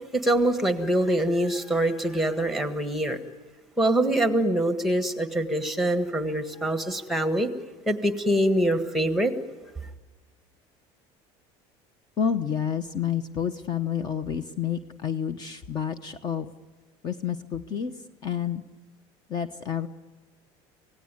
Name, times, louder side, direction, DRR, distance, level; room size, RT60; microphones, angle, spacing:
voice 1, 0.1-3.2 3.8-7.5 7.9-9.3, right 1 dB, ahead, 8 dB, 1.6 m, -24 dB
voice 2, 12.2-16.5 17.0-17.9 18.2-18.6 19.3-19.9, left 8 dB, 35° left, 11 dB, 1.0 m, -29 dB
27.0 x 18.0 x 9.8 m, 1.3 s
cardioid pair, 145°, 12 cm